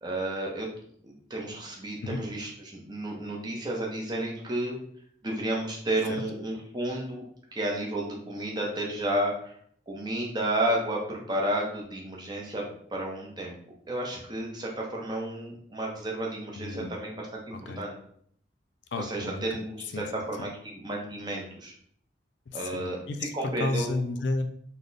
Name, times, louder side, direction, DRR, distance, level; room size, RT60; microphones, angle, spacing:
voice 1, 0.0-0.7 1.0-4.8 5.2-7.2 7.5-9.5 9.9-13.6 13.9-17.9 18.9-21.7 22.5-23.0 23.3-23.9, right 1 dB, 25° right, -2 dB, 0.7 m, -32 dB
voice 2, 16.5-16.9 17.5-17.8 18.9-19.4 19.9-20.1 22.5-24.4, left 2 dB, 70° left, 6 dB, 0.4 m, -32 dB
3.4 x 2.1 x 3.9 m, 0.62 s
head